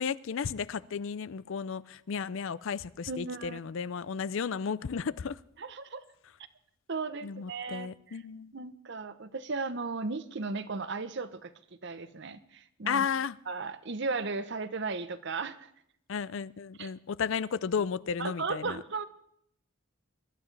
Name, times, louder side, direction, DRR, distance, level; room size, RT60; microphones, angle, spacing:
voice 1, 0.0-5.4 7.2-8.5 12.9-13.4 16.1-18.8, left 6 dB, 65° left, 18 dB, 0.4 m, -33 dB
voice 2, 3.1-3.6 5.6-6.0 6.9-8.2 8.5-11.5 11.8-13.1 13.5-15.7 16.8-16.9 18.2-19.1, right 4 dB, 55° right, 12 dB, 0.8 m, -36 dB
22.0 x 12.0 x 3.3 m, 0.71 s
head